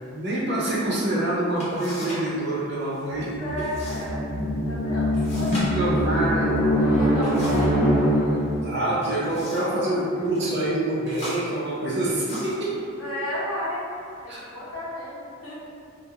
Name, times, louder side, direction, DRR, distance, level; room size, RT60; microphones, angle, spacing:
voice 1, 0.1-3.3 5.4-6.6 8.4-12.9 14.3-14.4, right 1 dB, 50° right, -7 dB, 0.6 m, -26 dB
sound 1, 1.6-2.3 2.6-3.1 3.6-4.1 4.4-4.5 5.1-7.8 8.8-9.8 10.2-10.5 11.0-12.7 13.5-13.6 14.2-14.7, equal, 30° left, 0.7 m, -38 dB
voice 2, 3.1-8.5 9.1-9.4 9.9-10.0 13.0-13.9 14.2-15.6, equal, 75° left, -8 dB, 0.8 m, -34 dB
sound 2, 3.1-8.7, equal, 5° right, 0.4 m, -23 dB
2.3 x 2.2 x 2.8 m, 2.4 s
head